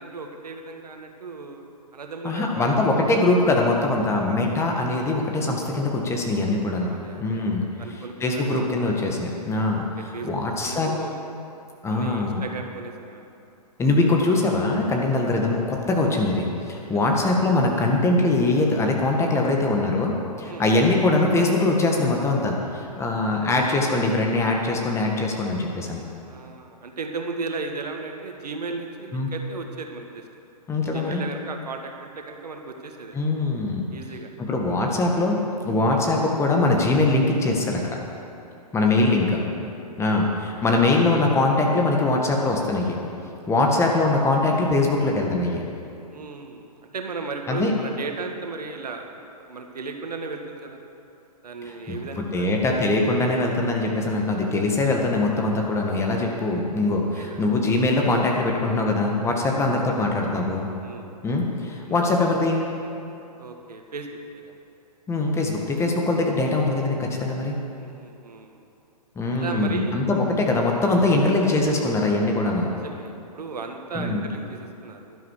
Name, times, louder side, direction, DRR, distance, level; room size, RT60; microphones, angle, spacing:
voice 1, 0.0-1.6 1.9-2.7 4.1-4.3 6.0-6.5 6.9-7.4 7.8-8.6 10.0-10.3 10.6-11.3 11.9-13.2 16.9-17.1 20.4-20.6 24.0-24.3 26.2-30.3 30.9-33.2 33.9-34.3 35.8-36.0 40.0-40.2 43.5-43.6 46.1-46.7 46.9-49.0 49.5-50.8 51.4-52.6 57.1-57.5 59.4-59.6 60.8-61.1 61.9-62.0 63.4-64.5 67.7-68.6 69.3-70.0 72.7-75.2, right 4 dB, 75° right, 4 dB, 1.6 m, -36 dB
voice 2, 2.2-7.6 8.2-9.8 10.2-10.9 11.8-12.4 13.8-26.0 29.1-29.3 30.7-31.2 33.1-33.8 34.4-38.0 38.7-39.4 40.0-43.0 43.5-45.6 47.5-47.7 51.6-60.7 61.2-62.6 65.1-67.6 69.1-72.7 73.9-74.2, left 2 dB, 15° left, 0 dB, 1.7 m, -22 dB
11.5 x 10.5 x 6.6 m, 2.7 s
hypercardioid pair, 120°, 20 cm